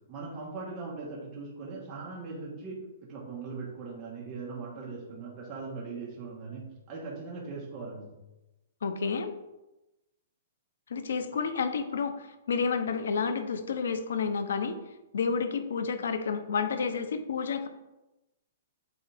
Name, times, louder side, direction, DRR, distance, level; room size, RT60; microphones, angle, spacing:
voice 1, 0.1-2.8 3.1-8.1, right 4 dB, 20° right, -4 dB, 1.3 m, -40 dB
voice 2, 8.8-9.3 10.9-14.8 15.1-17.7, left 5 dB, 80° left, 9 dB, 0.7 m, -30 dB
8.5 x 3.7 x 3.4 m, 0.99 s
hypercardioid pair, 165°, 0 cm